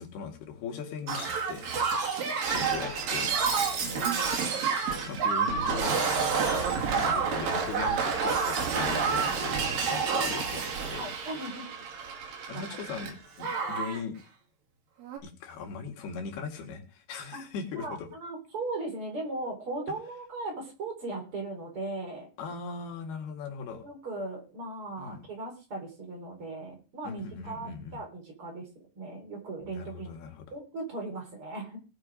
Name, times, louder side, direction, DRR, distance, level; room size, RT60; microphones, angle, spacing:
voice 1, 0.0-2.1 2.5-3.4 5.1-6.0 6.8-11.1 12.5-14.2 15.2-18.1 22.4-23.8 25.0-25.2 27.0-28.0 29.6-30.5, left 6 dB, 75° left, 3 dB, 3.8 m, -39 dB
Shatter, 1.1-13.1 13.4-14.0 15.0-15.2, right 5 dB, 60° right, 3.8 m, -29 dB
voice 2, 3.8-4.5 6.6-6.8 9.6-9.7 11.0-11.7 12.3-12.8 17.3-17.4 17.8-22.3 23.8-28.6 28.9-30.1 30.5-31.8, right 2 dB, 35° right, 2 dB, 4.8 m, -38 dB
19.0 x 6.7 x 5.1 m, 0.34 s
omnidirectional pair, 4.7 m